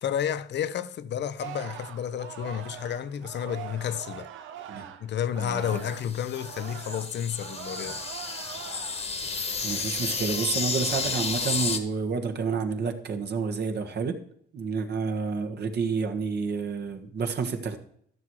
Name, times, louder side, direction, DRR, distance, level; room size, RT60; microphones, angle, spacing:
voice 1, 0.0-4.3 5.0-8.1 8.6-8.8, left 9 dB, 60° left, 0.7 m, -31 dB
Singing, 1.4-6.1 6.3-9.1 9.5-9.9, right 10 dB, 80° right, 0.9 m, -43 dB
sound 1, 5.7-11.8, left 4 dB, 30° left, 1.4 m, -32 dB
voice 2, 9.6-14.2 14.5-17.8, right 5 dB, 55° right, 1.4 m, -29 dB
13.5 x 6.2 x 4.7 m
cardioid pair, 90°, 20 cm